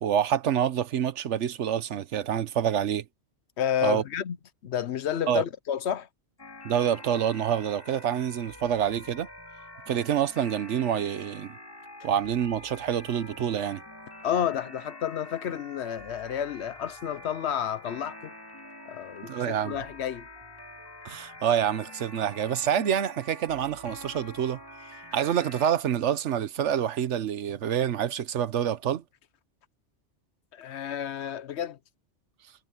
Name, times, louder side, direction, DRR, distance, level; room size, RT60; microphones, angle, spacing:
voice 1, 0.0-3.0 3.8-4.0 5.3-5.4 6.6-9.3 9.9-11.6 12.0-13.8 19.2-19.8 21.0-24.6 25.1-29.0, right 9 dB, 80° right, 1.1 m, -27 dB
voice 2, 3.6-4.4 4.6-6.1 14.2-18.3 18.9-20.3 30.5-31.8, left 9 dB, 70° left, 1.0 m, -30 dB
sound 1, 6.4-25.7, left 1 dB, 20° left, 2.4 m, -46 dB
omnidirectional pair, 1.2 m